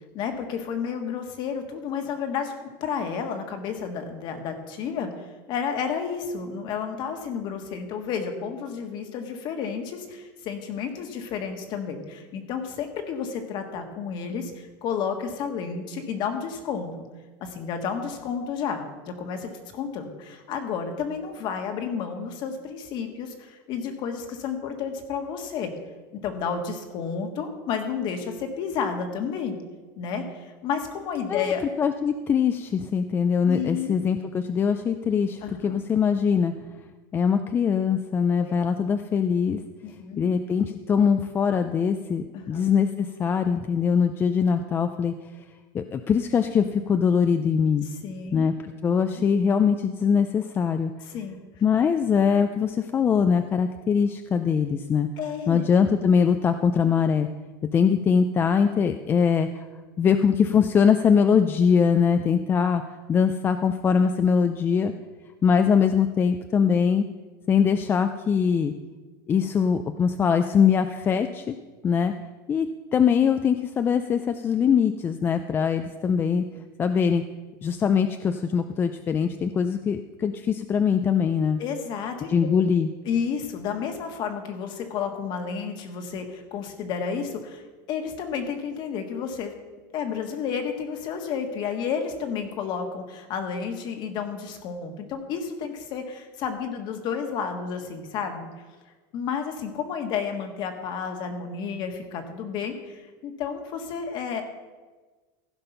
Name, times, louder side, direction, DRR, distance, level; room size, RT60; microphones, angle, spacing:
voice 1, 0.1-2.5 2.8-17.0 17.4-25.7 26.2-29.6 30.0-31.6 33.5-34.0 35.4-35.8 38.4-38.5 39.8-40.3 42.3-42.6 48.0-48.5 49.2-49.3 51.1-51.4 55.2-55.6 81.6-82.5 83.0-87.6 87.9-89.5 89.9-98.5 99.1-104.4, left 6 dB, 45° left, 6 dB, 1.5 m, -31 dB
voice 2, 31.8-36.5 37.1-39.6 40.2-45.1 45.7-47.9 48.3-50.9 51.6-55.1 55.5-57.3 57.7-59.6 60.0-62.8 63.1-64.9 65.4-67.0 67.5-68.7 69.3-71.6 71.8-72.1 72.5-76.4 76.8-77.2 77.6-81.6 82.3-82.9, left 6 dB, 20° left, 8 dB, 0.4 m, -22 dB
15.5 x 5.4 x 5.7 m, 1.3 s
supercardioid pair, 145°, 11 cm